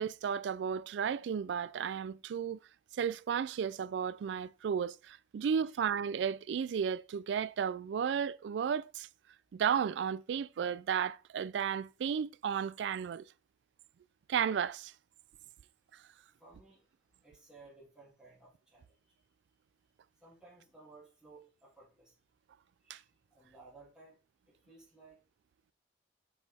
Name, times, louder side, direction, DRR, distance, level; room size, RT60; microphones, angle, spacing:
voice 1, 0.0-2.6 2.9-9.1 9.5-13.3 14.3-14.9 22.9-23.0, right 7 dB, 80° right, 0.3 m, -33 dB
voice 2, 5.4-5.8 16.3-16.9 17.2-19.0 20.2-22.1 22.8-24.2 24.5-25.2, right 3 dB, 5° right, 2.5 m, -58 dB
6.2 x 5.4 x 3.4 m
head